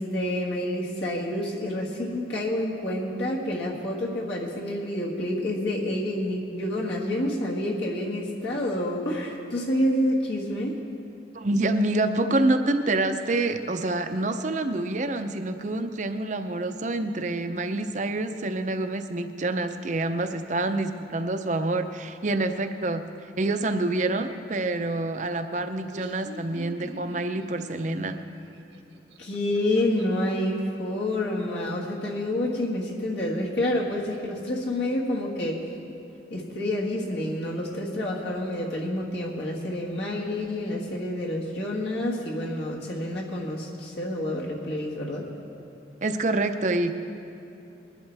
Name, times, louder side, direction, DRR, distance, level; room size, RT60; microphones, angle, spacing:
voice 1, 0.0-10.7 29.2-35.6 36.3-45.3, left 1 dB, 65° left, -3 dB, 1.7 m, -28 dB
voice 2, 11.3-23.0 23.4-28.2 46.0-46.9, right 2 dB, 40° right, 8 dB, 0.6 m, -27 dB
Laughter, 25.7-30.3, right 1 dB, 85° right, 1.2 m, -44 dB
21.5 x 11.5 x 3.4 m, 2.8 s
head